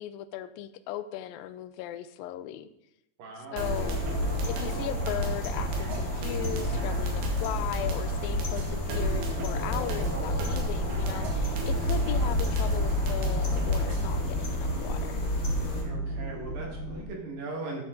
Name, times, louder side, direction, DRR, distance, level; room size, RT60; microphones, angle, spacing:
voice 1, 0.0-2.7 3.5-4.0 4.5-15.2, left 12 dB, 80° left, 13 dB, 2.2 m, -37 dB
voice 2, 3.2-3.6 15.8-17.8, right 3 dB, 65° right, -1 dB, 3.6 m, -39 dB
sound 1, 3.6-15.8, left 1 dB, 40° left, 1.6 m, -31 dB
sound 2, 3.6-14.2, right 2 dB, 85° right, 3.7 m, -34 dB
sound 3, 8.9-17.1, right 1 dB, 15° left, 2.2 m, -35 dB
13.0 x 7.3 x 3.9 m, 0.79 s
omnidirectional pair, 4.4 m